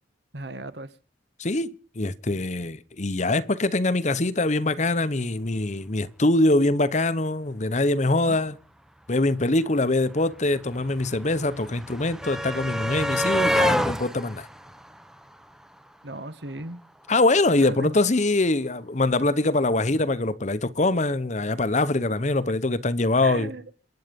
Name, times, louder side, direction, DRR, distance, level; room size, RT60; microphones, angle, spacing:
voice 1, 0.3-0.9 8.2-8.4 16.0-16.8 17.6-17.9 23.2-23.6, right 2 dB, 65° right, 1.6 m, -36 dB
voice 2, 1.4-8.5 9.1-14.5 17.1-23.5, left 2 dB, 40° left, 1.0 m, -23 dB
sound 1, 9.4-9.5 9.7-15.9 17.1-17.2 17.5-17.6, equal, 5° right, 0.9 m, -28 dB
28.5 x 9.5 x 5.3 m
head